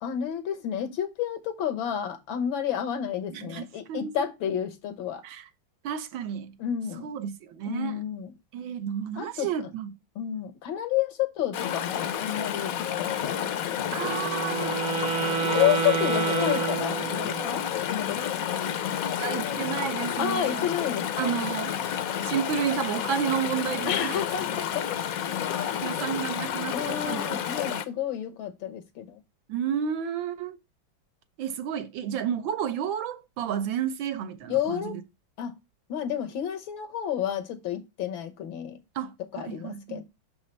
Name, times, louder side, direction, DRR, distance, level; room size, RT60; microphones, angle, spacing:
voice 1, 0.0-5.2 6.6-7.1 7.6-8.3 9.2-9.5 10.1-14.2 15.4-17.6 17.9-18.7 20.2-21.3 23.9-24.9 26.7-29.2 34.5-35.0 35.4-35.5 35.9-38.8 39.3-40.0, left 10 dB, 90° left, 1.8 m, -30 dB
voice 2, 3.3-4.1 5.2-5.5 5.8-6.6 7.0-8.0 8.5-9.9 13.9-14.7 19.2-20.7 21.2-21.7 22.2-24.2 25.6-27.3 27.7-27.8 29.5-30.6 31.4-35.0 38.9-40.0, right 8 dB, 80° right, 1.6 m, -31 dB
Chatter / Stream, 11.5-27.8, left 9 dB, 65° left, 0.9 m, -30 dB
Wind instrument woodwind instrument, 13.9-17.6, right 7 dB, 55° right, 1.2 m, -29 dB
6.2 x 5.5 x 3.1 m
omnidirectional pair, 2.1 m